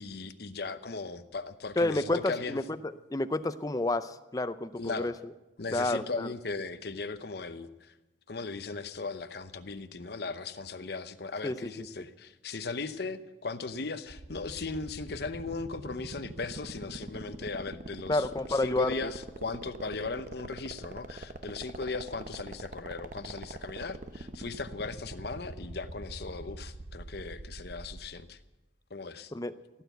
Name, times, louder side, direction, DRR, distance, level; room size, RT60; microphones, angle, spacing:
voice 1, 0.0-2.6 4.8-5.1 5.6-7.9 8.3-28.4 28.9-29.3, left 4 dB, 55° left, 10 dB, 0.8 m, -38 dB
voice 2, 1.8-2.6 3.1-5.1 5.7-6.3 11.4-11.5 18.1-19.1 29.3-29.5, left 2 dB, 20° left, 12 dB, 0.5 m, -29 dB
sound 1, 14.1-28.1, right 2 dB, 45° right, 0.8 m, -42 dB
17.0 x 9.2 x 8.0 m, 1.1 s
head